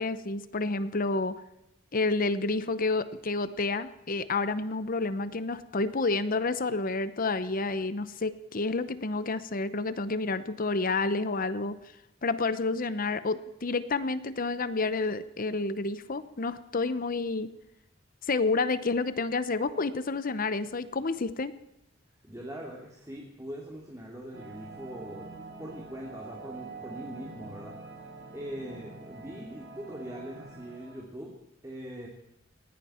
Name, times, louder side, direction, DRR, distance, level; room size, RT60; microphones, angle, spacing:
voice 1, 0.0-1.3 1.9-11.8 12.2-17.5 18.2-21.5, left 3 dB, 45° left, 14 dB, 0.8 m, -29 dB
voice 2, 22.2-25.3 25.6-27.8 28.3-31.3 31.6-32.1, equal, 15° right, -2 dB, 2.6 m, -41 dB
sound 1, 24.3-31.0, right 3 dB, 70° right, 7.1 m, -46 dB
20.0 x 16.5 x 4.4 m, 0.84 s
head